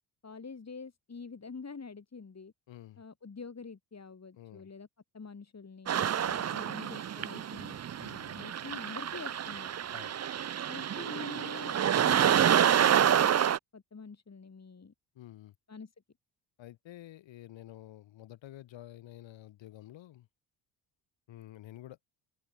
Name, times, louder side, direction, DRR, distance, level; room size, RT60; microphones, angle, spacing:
voice 1, 0.2-2.5 3.0-4.9 5.1-7.8 8.3-9.7 10.7-11.8 12.0-13.4 13.7-14.9 15.7-15.9, left 5 dB, 35° left, 6.1 m, -46 dB
voice 2, 2.7-3.0 4.4-4.7 8.0-8.4 9.9-10.1 15.1-15.5 16.6-20.3 21.3-22.0, left 14 dB, 70° left, 2.7 m, -50 dB
sound 1, 5.9-13.6, right 9 dB, 35° right, 0.7 m, -28 dB
open air
hypercardioid pair, 55°, 47 cm